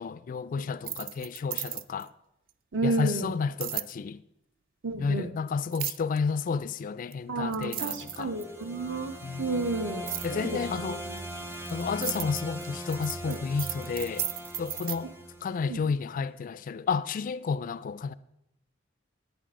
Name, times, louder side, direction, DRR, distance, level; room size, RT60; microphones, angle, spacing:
voice 1, 0.0-2.1 2.8-4.2 5.0-8.3 9.2-9.5 10.2-11.0 11.7-14.3 14.6-15.1 15.4-18.1, left 5 dB, 45° left, 0.3 m, -31 dB
sound 1, 0.7-2.1 3.6-3.9 5.7-6.2 7.1-7.2 7.5-8.6 10.1-10.3 11.2-15.0, right 12 dB, 45° right, 0.3 m, -35 dB
voice 2, 2.7-3.3 4.8-5.3 7.3-9.1 9.4-11.2 13.3-13.4 15.7-15.8, right 2 dB, 65° right, 1.0 m, -32 dB
sound 2, 7.7-15.9, right 1 dB, 10° right, 0.7 m, -40 dB
11.0 x 11.0 x 3.7 m
head